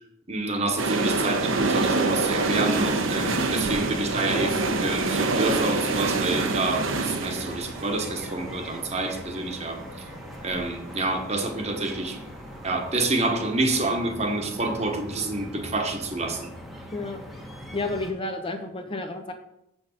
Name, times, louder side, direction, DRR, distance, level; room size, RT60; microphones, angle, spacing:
voice 1, 0.3-9.8 10.4-12.2 12.6-16.5, right 2 dB, 30° right, 4 dB, 1.3 m, -28 dB
sound 1, 0.8-10.6 10.9-11.0, right 3 dB, 60° right, 1.0 m, -26 dB
sound 2, 2.8-18.1, equal, ahead, 1.2 m, -41 dB
voice 2, 17.7-19.3, left 2 dB, 25° left, 5 dB, 0.8 m, -31 dB
7.8 x 6.3 x 6.5 m, 0.81 s
head